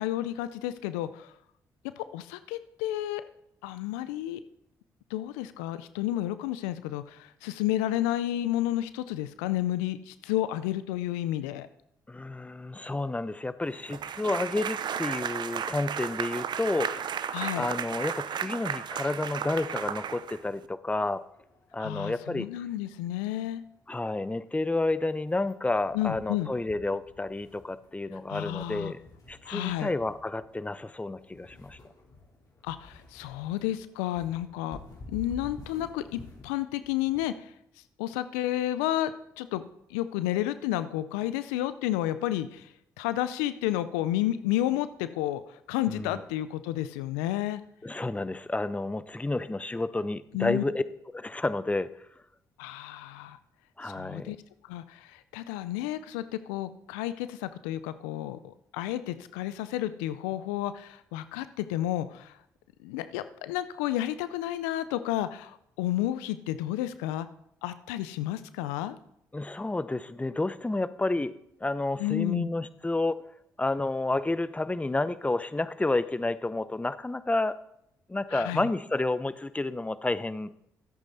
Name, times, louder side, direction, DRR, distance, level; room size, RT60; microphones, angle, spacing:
voice 1, 0.0-1.3 2.0-3.2 3.6-4.4 5.1-11.7 17.3-17.7 21.8-23.6 25.9-26.5 28.3-28.9 29.5-29.9 32.6-34.8 35.1-37.5 38.0-39.6 39.9-42.7 43.0-47.6 50.3-50.6 52.6-53.4 53.8-54.4 54.6-62.3 62.8-67.3 67.6-69.0 72.0-72.5 78.3-78.7, left 13 dB, 90° left, 14 dB, 0.4 m, -31 dB
voice 2, 12.1-17.1 17.5-21.2 21.7-22.5 23.9-29.0 29.3-31.8 45.9-46.2 47.8-50.8 51.1-52.1 53.8-54.4 69.3-71.3 71.6-73.2 73.6-77.6 78.1-80.5, left 2 dB, 15° left, 15 dB, 0.7 m, -30 dB
sound 1, 13.9-20.7, right 8 dB, 60° right, 0.7 m, -34 dB
sound 2, 21.1-37.4, left 2 dB, 45° left, 3.8 m, -52 dB
13.5 x 8.2 x 4.1 m, 0.77 s
hypercardioid pair, 50°, 9 cm